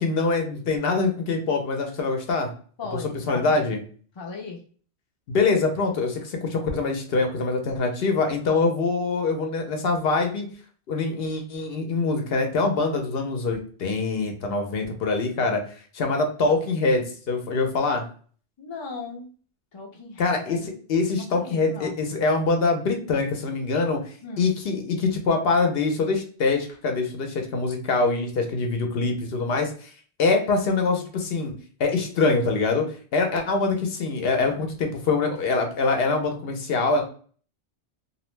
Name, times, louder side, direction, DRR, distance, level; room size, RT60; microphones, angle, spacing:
voice 1, 0.0-2.5 3.3-3.8 5.3-10.5 10.9-15.6 15.9-18.0 20.2-29.9 30.2-31.5 31.8-37.0, left 3 dB, 65° left, 4 dB, 0.7 m, -24 dB
voice 2, 2.8-3.7 4.2-4.6 18.6-19.3 19.7-20.7 21.1-22.0 24.2-24.5, left 4 dB, 35° left, 1 dB, 0.4 m, -37 dB
2.6 x 2.0 x 3.0 m, 0.43 s
omnidirectional pair, 1.1 m